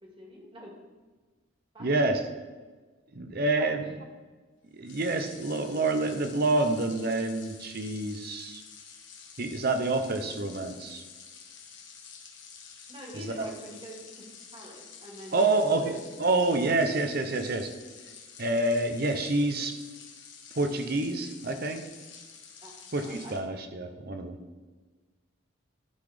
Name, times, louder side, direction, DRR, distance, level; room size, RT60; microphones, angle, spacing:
voice 1, 0.0-0.7 1.7-1.9 3.6-3.7 12.9-14.2 14.5-15.9 22.6-23.4, right 1 dB, 25° right, -2 dB, 2.0 m, -45 dB
voice 2, 1.8-2.2 3.1-3.8 4.7-8.6 9.4-11.0 13.1-13.5 15.3-17.7 18.4-19.7 20.5-21.8 22.9-24.4, right 2 dB, 50° right, 7 dB, 0.7 m, -27 dB
sound 1, 4.8-23.4, left 6 dB, 65° left, 1.3 m, -49 dB
12.0 x 4.1 x 5.0 m, 1.3 s
head